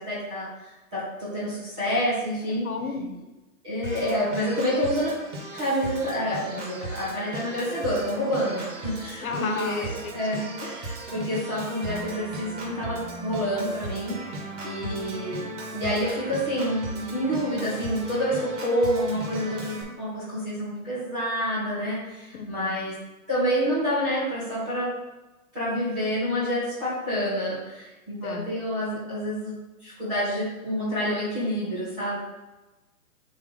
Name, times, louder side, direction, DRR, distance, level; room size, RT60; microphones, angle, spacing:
voice 1, 0.0-2.7 3.6-5.2 5.5-14.2 14.6-15.5 15.7-22.9 23.3-24.9 25.5-29.5 29.8-32.2, equal, 5° right, -12 dB, 0.5 m, -28 dB
voice 2, 2.6-3.1 9.2-10.5 14.8-15.0 22.3-22.8 28.2-28.5, left 4 dB, 75° left, 6 dB, 1.1 m, -33 dB
Organ, 3.8-19.8, right 1 dB, 55° right, 1.8 m, -37 dB
7.4 x 3.4 x 3.8 m, 1.1 s
hypercardioid pair, 160°, 43 cm